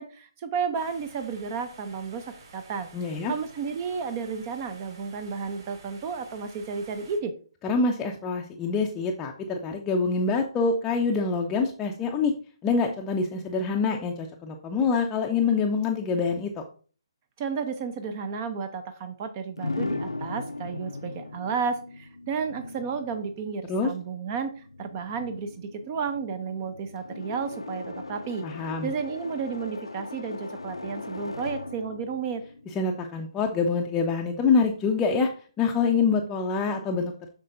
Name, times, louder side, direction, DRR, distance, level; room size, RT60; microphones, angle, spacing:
voice 1, 0.0-2.9 3.3-7.3 17.4-32.4, right 5 dB, 30° right, 10 dB, 0.6 m, -32 dB
sound 1, 0.7-7.2, right 3 dB, 45° right, 3.4 m, -51 dB
voice 2, 2.9-3.3 7.6-12.3 12.6-16.6 23.7-23.9 28.4-28.9 32.7-35.3 35.6-37.3, left 4 dB, 15° left, 1 dB, 0.6 m, -25 dB
sound 2, 19.6-33.4, left 2 dB, 80° left, 0.6 m, -38 dB
7.5 x 5.9 x 2.6 m, 0.41 s
figure-of-eight pair, 135°, 3 cm